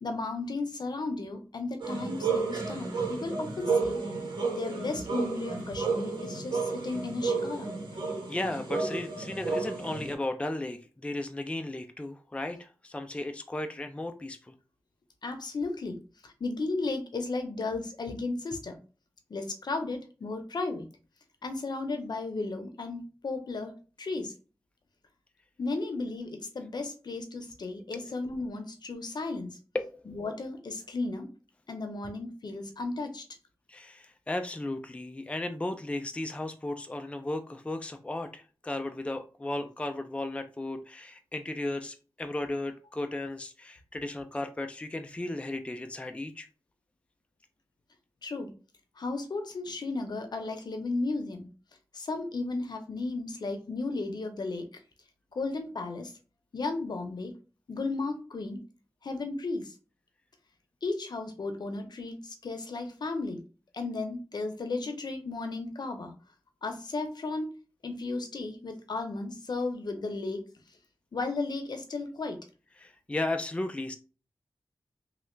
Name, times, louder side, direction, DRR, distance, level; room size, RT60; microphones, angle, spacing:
voice 1, 0.0-4.0 4.5-7.7 15.2-18.8 19.3-20.9 21.4-24.3 25.6-29.6 30.1-31.3 31.7-33.2 48.2-48.5 49.0-51.5 51.9-54.7 55.3-56.1 56.5-57.3 57.7-58.6 59.0-59.7 60.8-63.4 63.7-66.1 66.6-67.6 67.8-70.5 71.1-72.4, left 3 dB, 65° left, 6 dB, 0.7 m, -34 dB
sound 1, 1.8-10.1, right 4 dB, 70° right, 1.2 m, -32 dB
voice 2, 8.3-14.4 27.9-28.0 29.7-30.2 33.7-46.5 72.8-73.9, left 2 dB, 15° left, 7 dB, 0.4 m, -35 dB
3.2 x 2.4 x 3.1 m, 0.36 s
cardioid pair, 50°, 8 cm